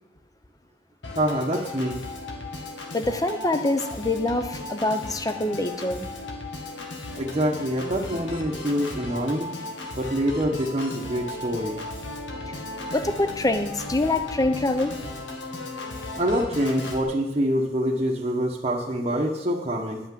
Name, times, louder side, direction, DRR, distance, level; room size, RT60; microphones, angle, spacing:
Organ, 1.0-17.0, left 2 dB, 85° left, 1.5 m, -36 dB
voice 1, 1.1-2.0 7.2-9.5 9.9-11.8 16.2-20.0, equal, 35° right, -3 dB, 1.0 m, -25 dB
voice 2, 2.9-6.1 12.5-12.6 12.9-15.0, left 2 dB, 20° left, 9 dB, 0.6 m, -25 dB
10.5 x 5.8 x 7.5 m, 1.0 s
head